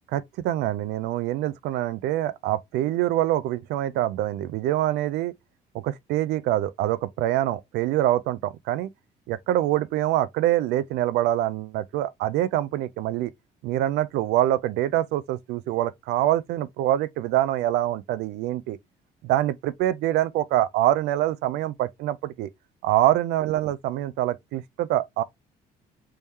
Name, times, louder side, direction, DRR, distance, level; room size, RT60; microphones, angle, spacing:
voice 1, 0.1-5.3 5.7-8.9 9.3-13.3 13.6-18.8 19.2-22.5 22.8-25.2, right 13 dB, 85° right, 0.4 m, -25 dB
3.5 x 3.2 x 2.7 m
cardioid pair, 110°, 17 cm